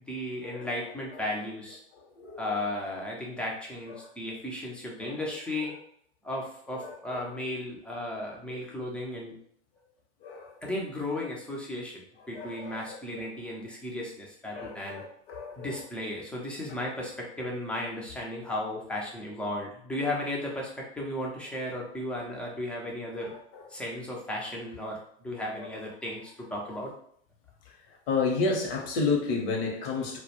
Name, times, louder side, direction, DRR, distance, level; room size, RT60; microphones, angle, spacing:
voice 1, 0.1-1.8 2.4-5.7 6.2-9.3 10.6-15.0 15.6-23.3 23.7-26.9, left 1 dB, 5° left, -2 dB, 0.3 m, -35 dB
voice 2, 2.2-2.6 3.9-4.1 5.0-5.1 6.8-7.3 10.2-10.5 12.3-13.3 14.5-15.8 23.5-23.6 25.6-25.7 28.1-30.2, left 4 dB, 55° left, 1 dB, 0.8 m, -31 dB
2.1 x 2.1 x 2.9 m, 0.63 s
hypercardioid pair, 100°, 35 cm